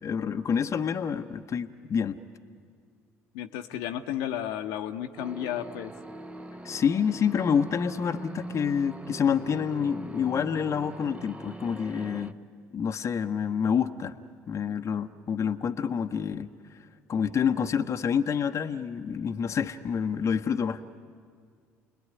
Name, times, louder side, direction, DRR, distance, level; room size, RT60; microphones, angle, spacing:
voice 1, 0.0-2.2 6.6-12.4 12.7-14.1 14.5-16.5 17.1-20.8, left 7 dB, 40° left, 7 dB, 1.0 m, -27 dB
voice 2, 3.3-5.9, left 11 dB, 70° left, 5 dB, 1.1 m, -33 dB
sound 1, 5.2-12.3, right 2 dB, 15° right, 1.0 m, -41 dB
29.5 x 20.5 x 9.6 m, 2.1 s
hypercardioid pair, 65°, 8 cm